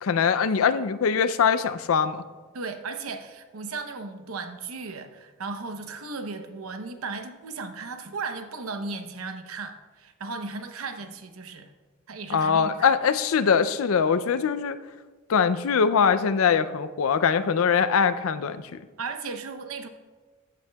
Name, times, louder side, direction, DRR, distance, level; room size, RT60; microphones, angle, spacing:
voice 1, 0.0-2.2 12.3-14.8 15.3-18.8, left 6 dB, 75° left, 13 dB, 0.4 m, -22 dB
voice 2, 2.5-11.7 12.1-12.8 19.0-19.9, right 4 dB, 85° right, 7 dB, 0.8 m, -36 dB
15.0 x 8.5 x 2.3 m, 1.4 s
head